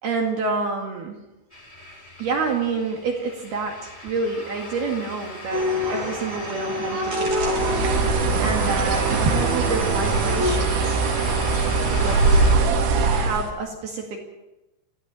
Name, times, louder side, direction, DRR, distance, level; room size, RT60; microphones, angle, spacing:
voice 1, 0.0-1.2 2.2-7.7 8.4-11.0 12.0-12.3 13.1-14.2, right 4 dB, 60° right, 2 dB, 3.8 m, -28 dB
sound 1, 1.5-12.5, left 1 dB, 10° left, 3.4 m, -37 dB
sound 2, 5.5-10.5, left 1 dB, 40° right, 5.7 m, -27 dB
Bird, 7.3-13.5, right 4 dB, 85° right, 5.2 m, -22 dB
22.5 x 15.5 x 8.4 m, 0.99 s
omnidirectional pair, 5.6 m